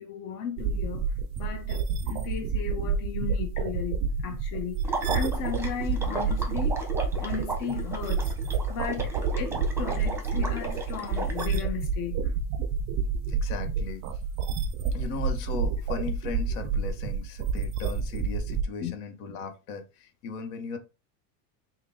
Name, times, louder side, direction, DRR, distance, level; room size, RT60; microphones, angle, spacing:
voice 1, 0.0-6.8 7.2-8.3 8.7-12.3 18.8-19.0, left 7 dB, 45° left, 0.7 m, -36 dB
sound 1, 0.6-18.6, right 5 dB, 35° right, 0.4 m, -29 dB
Water / Liquid, 4.8-11.6, right 2 dB, 5° right, 0.9 m, -35 dB
voice 2, 13.3-14.1 14.9-20.8, left 5 dB, 70° left, 1.0 m, -37 dB
3.6 x 2.2 x 3.6 m
supercardioid pair, 105°, 48 cm